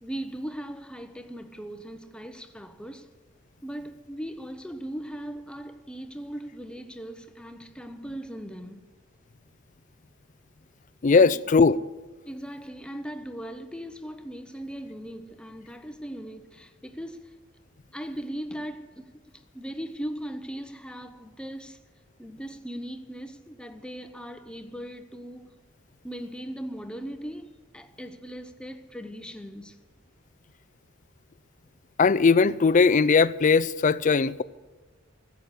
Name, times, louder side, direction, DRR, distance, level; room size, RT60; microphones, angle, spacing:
voice 1, 0.0-3.1 3.6-8.9 11.2-11.4 12.2-17.4 17.9-21.8 22.2-25.5 26.0-29.8, equal, 5° left, 0.8 m, -39 dB
voice 2, 11.0-11.8 32.0-34.4, left 4 dB, 40° left, 0.4 m, -19 dB
15.0 x 8.3 x 9.9 m
head